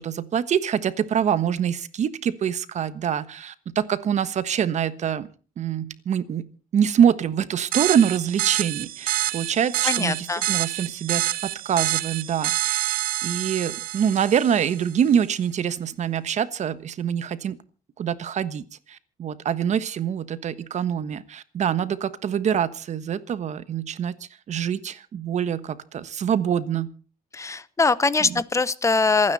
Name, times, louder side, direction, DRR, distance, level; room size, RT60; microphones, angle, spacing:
voice 1, 0.0-5.3 5.6-6.5 6.7-17.6 18.0-26.9 28.2-28.4, right 8 dB, 50° right, 14 dB, 1.3 m, -25 dB
sound 1, 7.7-14.9, right 15 dB, 75° right, 0.7 m, -27 dB
voice 2, 9.8-10.4 27.3-29.3, left 3 dB, 20° left, 18 dB, 0.9 m, -22 dB
27.5 x 9.9 x 4.2 m, 0.37 s
cardioid pair, 115°, 15 cm